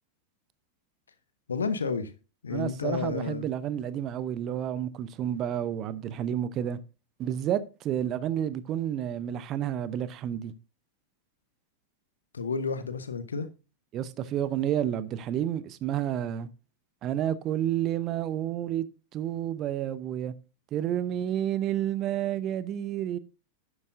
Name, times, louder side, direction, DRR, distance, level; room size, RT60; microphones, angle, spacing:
voice 1, 1.5-2.1 2.4-3.5 12.3-13.5, left 5 dB, 70° left, 0.9 m, -31 dB
voice 2, 2.5-6.8 7.2-10.5 13.9-16.5 17.0-18.9 19.1-20.3 20.7-23.2, right 10 dB, 35° right, 0.7 m, -30 dB
11.0 x 8.0 x 2.6 m
figure-of-eight pair, 90°, 0 cm